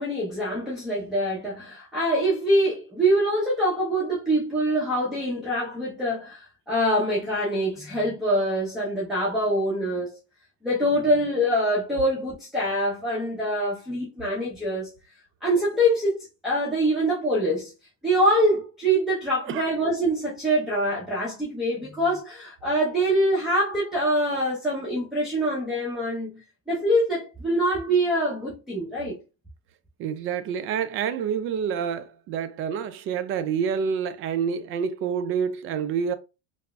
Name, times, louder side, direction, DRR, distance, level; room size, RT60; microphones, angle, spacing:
voice 1, 0.0-10.2 10.6-14.9 15.4-16.2 16.4-17.7 18.0-29.2, equal, ahead, 0.7 m, -24 dB
voice 2, 30.0-36.1, right 7 dB, 35° right, 0.4 m, -28 dB
3.3 x 2.0 x 2.3 m
supercardioid pair, 120°, 37 cm